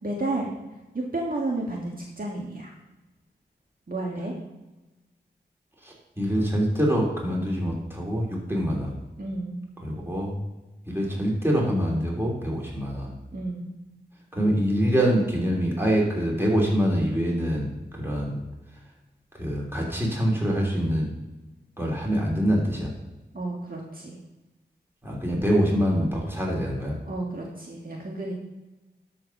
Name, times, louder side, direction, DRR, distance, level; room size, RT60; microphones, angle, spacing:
voice 1, 0.0-0.6 0.9-2.7 3.9-4.3 9.2-9.6 13.3-13.7 23.3-24.2 27.1-28.3, right 2 dB, 50° right, -2 dB, 1.7 m, -31 dB
voice 2, 5.8-9.0 9.8-10.4 10.9-13.1 14.3-18.4 19.4-21.1 21.8-22.9 25.0-27.0, equal, 10° right, -3 dB, 3.4 m, -25 dB
12.5 x 4.4 x 6.0 m, 1.1 s
wide cardioid pair, 55°, 19 cm